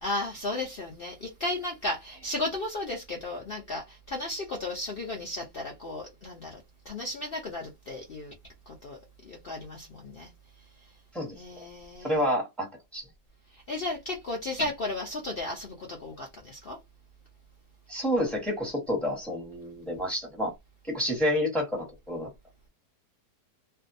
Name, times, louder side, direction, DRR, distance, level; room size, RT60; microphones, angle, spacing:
voice 1, 0.0-6.6 6.9-8.3 8.7-9.0 9.2-10.3 11.3-12.2 13.5-16.8, left 2 dB, 85° left, 0.5 m, -34 dB
voice 2, 12.0-13.0 17.9-20.5 20.9-22.3, equal, ahead, 0.7 m, -29 dB
2.6 x 2.3 x 2.5 m
omnidirectional pair, 1.8 m